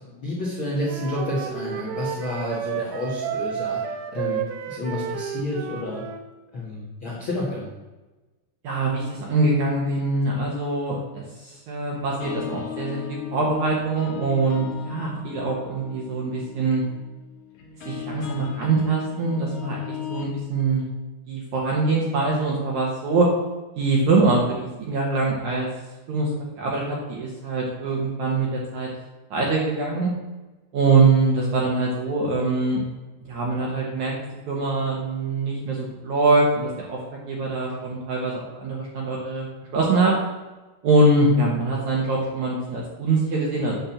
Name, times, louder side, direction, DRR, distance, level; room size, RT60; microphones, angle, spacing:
voice 1, 0.2-6.0 6.5-7.7, left 1 dB, 85° left, -5 dB, 1.1 m, -30 dB
Wind instrument woodwind instrument, 0.9-6.2, right 9 dB, 85° right, 2.2 m, -31 dB
voice 2, 8.6-16.8 17.9-20.8 21.3-23.3 23.8-25.7 26.1-26.3 26.6-28.9 29.3-30.1 30.7-32.8 33.3-34.1 34.5-37.0 37.3-39.5 39.7-40.1 40.8-43.8, right 3 dB, 65° right, -3 dB, 1.9 m, -23 dB
sound 1, 12.0-20.3, left 10 dB, 60° left, 2.3 m, -37 dB
8.9 x 4.4 x 7.1 m, 1.2 s
omnidirectional pair, 5.1 m